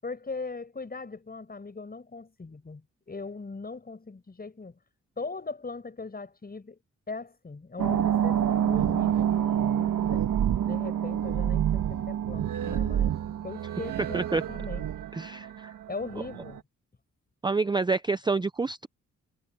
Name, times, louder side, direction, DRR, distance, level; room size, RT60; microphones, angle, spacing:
voice 1, 0.0-4.8 5.2-6.8 7.1-10.3 10.6-13.2 13.4-14.9 15.9-16.6, left 4 dB, 30° left, 7.9 m, -39 dB
sound 1, 7.8-16.6, right 10 dB, 80° right, 1.6 m, -27 dB
voice 2, 15.1-15.7 17.4-18.9, right 3 dB, 15° right, 0.5 m, -28 dB
cardioid pair, 105°, 32 cm